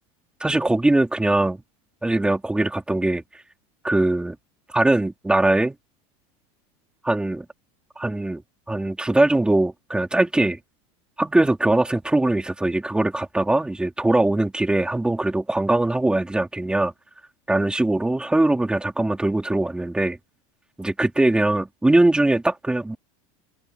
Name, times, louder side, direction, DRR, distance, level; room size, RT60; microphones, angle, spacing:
voice 1, 0.4-1.6 2.0-3.2 3.8-4.4 4.7-5.8 7.0-7.4 8.0-8.4 8.7-10.6 11.2-16.9 17.5-20.2 20.8-23.0, right 2 dB, 5° right, 3.9 m, -21 dB
open air
supercardioid pair, 160°, 17 cm